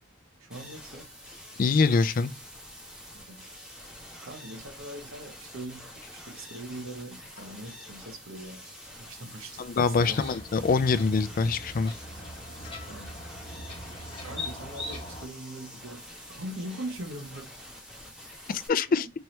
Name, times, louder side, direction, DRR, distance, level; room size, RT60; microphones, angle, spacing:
voice 1, 0.4-1.1 3.1-3.5 4.2-10.3 12.8-13.2 14.2-17.5 18.8-19.1, right 1 dB, 75° right, 1.0 m, -42 dB
sound 1, 0.5-18.7, equal, 5° right, 1.1 m, -47 dB
voice 2, 1.6-2.3 9.6-11.9 18.5-19.1, left 4 dB, 40° left, 0.3 m, -24 dB
sound 2, 9.9-15.3, left 1 dB, 25° left, 1.1 m, -40 dB
4.6 x 2.8 x 3.2 m
head